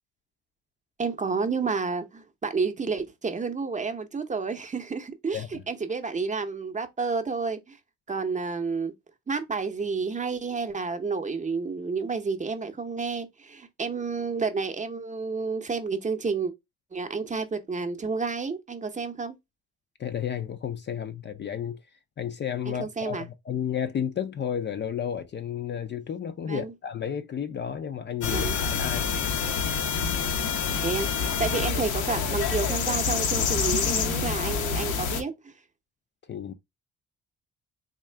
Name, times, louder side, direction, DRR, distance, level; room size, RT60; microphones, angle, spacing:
voice 1, 1.0-7.8 8.1-8.9 9.3-16.5 16.9-19.4 22.7-23.3 26.5-26.7 28.3-28.6 30.8-35.5, right 4 dB, 25° right, 0.7 m, -30 dB
voice 2, 20.0-21.8 22.2-28.5 28.8-29.1 36.3-36.5, left 8 dB, 35° left, 0.4 m, -32 dB
sound 1, 28.2-35.2, left 6 dB, 80° left, 0.7 m, -27 dB
3.6 x 2.3 x 3.2 m
cardioid pair, 90°, 30 cm